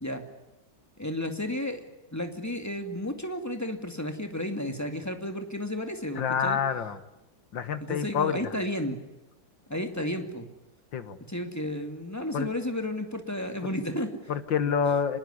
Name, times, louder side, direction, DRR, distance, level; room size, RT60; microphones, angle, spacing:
voice 1, 1.0-1.8 2.1-6.6 7.8-9.0 9.7-10.5 11.3-14.3, left 1 dB, 10° left, 6 dB, 2.2 m, -32 dB
voice 2, 6.2-7.0 7.5-8.6 10.9-11.2 12.3-12.5 13.6-13.7 14.3-15.2, left 7 dB, 80° left, 12 dB, 2.2 m, -27 dB
26.5 x 21.0 x 9.8 m, 0.94 s
omnidirectional pair, 2.0 m